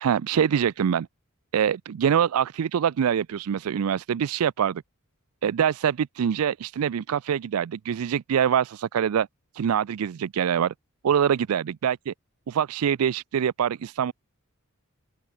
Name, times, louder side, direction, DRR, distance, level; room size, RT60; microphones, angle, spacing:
voice 1, 0.0-1.1 1.5-4.8 5.4-9.3 9.5-10.7 11.0-12.1 12.5-14.1, right 8 dB, 80° right, 0.4 m, -24 dB
open air
head